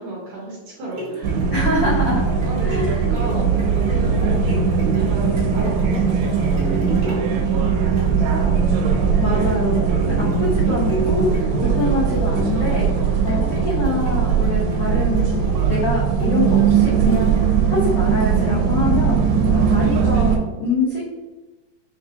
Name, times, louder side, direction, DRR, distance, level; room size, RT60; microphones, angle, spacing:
voice 1, 0.0-2.1 2.4-9.1, right 1 dB, 70° right, -4 dB, 1.9 m, -35 dB
sound 1, 0.8-17.8 18.3-18.4, right 2 dB, 45° right, 1.9 m, -34 dB
sound 2, 1.2-20.4, right 6 dB, 85° right, 2.3 m, -19 dB
voice 2, 1.5-2.2 2.6-3.0 9.2-12.9 13.2-15.4 15.7-17.3 17.7-19.2 19.6-21.0, left 2 dB, 85° left, -7 dB, 1.3 m, -24 dB
sound 3, 2.1-20.2, left 3 dB, 55° left, 0.7 m, -39 dB
6.5 x 2.7 x 2.6 m, 1.2 s
omnidirectional pair, 4.1 m